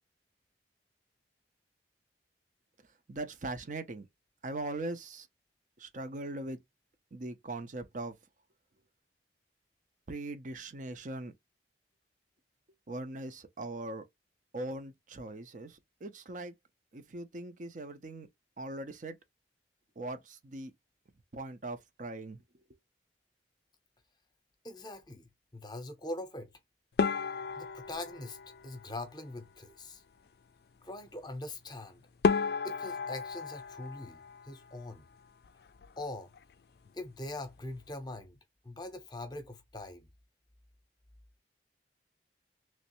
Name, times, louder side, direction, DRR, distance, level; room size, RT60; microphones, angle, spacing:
voice 1, 3.1-4.1 4.4-5.3 5.8-6.6 7.1-8.1 10.1-11.3 12.9-14.0 14.5-16.5 16.9-18.3 18.6-19.2 20.0-20.7 21.3-22.4, right 2 dB, 45° right, 0.5 m, -40 dB
voice 2, 24.6-26.5 27.6-28.4 28.6-30.0 30.8-32.0 32.6-35.0 36.0-36.3 36.9-38.4 38.6-40.1, left 2 dB, 25° left, 0.7 m, -42 dB
sound 1, 27.0-29.4 31.7-31.8 32.2-35.0 35.3-36.0 36.3-36.5 36.8-36.9 37.6-37.9, left 5 dB, 60° left, 0.3 m, -34 dB
3.2 x 3.1 x 3.0 m
head